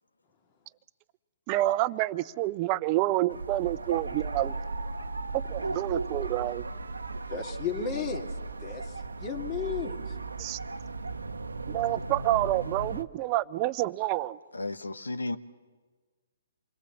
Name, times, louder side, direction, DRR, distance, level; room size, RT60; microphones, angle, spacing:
voice 1, 1.5-4.5 5.3-6.6 10.4-10.6 11.7-14.4, right 16 dB, 30° right, 0.7 m, -28 dB
sound 1, 3.3-13.0, right 3 dB, 80° right, 1.0 m, -36 dB
voice 2, 7.3-8.3 8.6-10.2, left 6 dB, 30° left, 2.4 m, -34 dB
voice 3, 14.5-15.4, left 2 dB, 80° left, 1.3 m, -33 dB
27.5 x 21.5 x 7.2 m
figure-of-eight pair, 125°, 0 cm